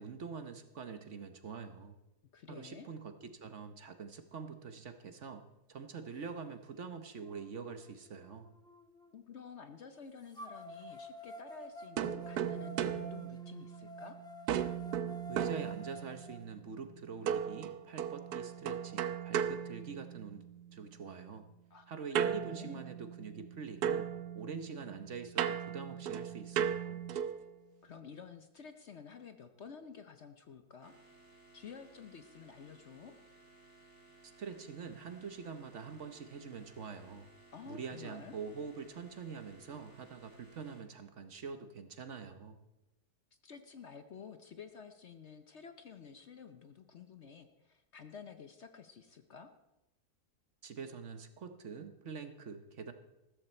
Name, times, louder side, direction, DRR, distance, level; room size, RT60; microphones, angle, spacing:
voice 1, 0.0-2.0 2.5-5.4 5.7-8.5 15.3-20.4 20.7-21.4 21.9-24.1 24.3-27.0 34.4-37.3 37.7-42.6 50.6-52.9, right 5 dB, 55° right, 9 dB, 1.1 m, -45 dB
voice 2, 2.3-2.9 9.1-14.2 21.7-22.9 27.8-30.9 31.5-33.1 37.5-38.4 43.4-49.5, left 6 dB, 55° left, 8 dB, 0.9 m, -51 dB
sound 1, 6.5-6.6 7.2-9.1 10.3-16.4, left 1 dB, 5° left, 0.7 m, -50 dB
sound 2, 12.0-14.1 14.5-16.3 17.3-20.5 22.1-23.5 23.8-27.5, right 9 dB, 80° right, 1.2 m, -36 dB
sound 3, 30.8-40.8, right 2 dB, 10° right, 3.2 m, -61 dB
15.0 x 13.5 x 4.4 m, 0.96 s
omnidirectional pair, 1.7 m